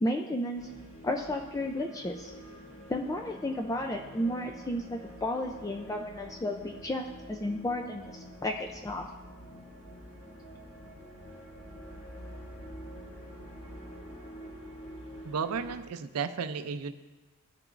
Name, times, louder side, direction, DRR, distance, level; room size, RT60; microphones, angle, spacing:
voice 1, 0.0-0.7 1.0-2.3 2.9-9.1, left 1 dB, 15° left, 2 dB, 0.4 m, -33 dB
sound 1, 0.5-15.8, equal, 45° left, 2.0 m, -47 dB
voice 2, 15.2-16.9, right 5 dB, 85° right, 11 dB, 0.5 m, -33 dB
15.5 x 6.8 x 2.5 m, 1.2 s
head